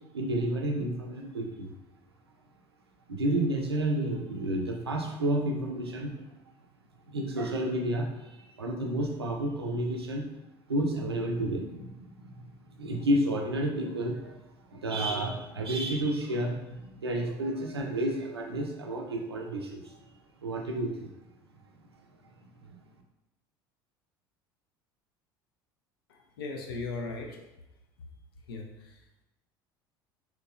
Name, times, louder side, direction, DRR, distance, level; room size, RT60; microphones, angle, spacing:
voice 1, 0.1-1.7 3.1-6.2 7.1-10.3 10.7-12.5 12.8-20.0 20.4-21.1, right 1 dB, 85° right, 1 dB, 0.5 m, -31 dB
voice 2, 26.1-27.4 28.5-29.0, left 3 dB, 70° left, 2 dB, 0.5 m, -38 dB
3.6 x 2.9 x 2.4 m, 0.96 s
figure-of-eight pair, 65°, 13 cm